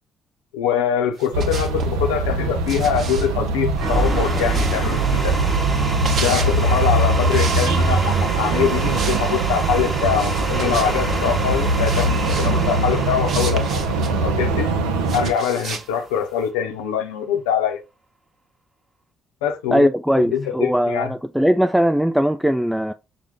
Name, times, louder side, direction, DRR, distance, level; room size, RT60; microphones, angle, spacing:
voice 1, 0.5-5.4 6.1-13.9 14.2-14.7 15.1-17.8 19.4-19.9 20.2-21.1, left 8 dB, 70° left, 0.6 m, -23 dB
sound 1, 1.2-1.9 2.7-5.0 5.8-6.6 7.3-8.1 8.8-9.2 9.5-9.7 10.2-11.2 11.8-12.5 13.3-14.1 15.1-15.9, right 5 dB, 50° right, 0.8 m, -32 dB
sound 2, 1.3-15.3, right 2 dB, 70° right, 0.5 m, -22 dB
sound 3, 3.7-15.9, right 3 dB, 25° right, 1.0 m, -28 dB
voice 2, 19.7-22.9, equal, 5° right, 0.3 m, -19 dB
5.8 x 2.1 x 3.5 m
figure-of-eight pair, 45°, 0 cm